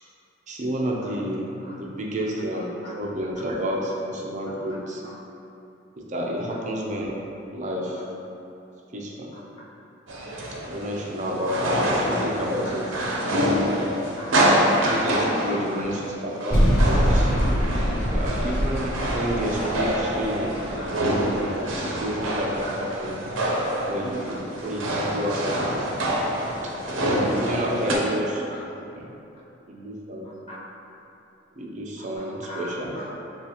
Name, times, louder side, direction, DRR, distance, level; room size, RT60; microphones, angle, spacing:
voice 1, 0.5-1.5 1.8-5.0 6.0-7.2 7.5-8.0 8.9-9.3 10.7-13.0 13.8-14.1 14.7-17.3 18.1-20.5 21.3-23.2 23.9-25.9 26.9-28.5 28.9-29.1 29.7-30.5 31.6-33.0, equal, 40° right, -2 dB, 0.5 m, -30 dB
voice 2, 2.4-2.9 3.4-3.5 4.6-4.8 5.0-5.2 7.9-8.0 9.3-9.6 11.5-11.6 12.6-12.7 14.2-14.4 19.5-19.8 20.6-20.9 21.8-22.6 24.3-25.6 27.3-28.0 28.3-28.7 30.2-30.6 32.0-33.1, left 1 dB, 30° left, -6 dB, 0.8 m, -43 dB
sound 1, 10.1-28.0, right 1 dB, 85° right, 0.6 m, -26 dB
sound 2, 16.5-21.7, equal, 50° left, 1.5 m, -24 dB
7.0 x 2.4 x 2.9 m, 2.8 s
head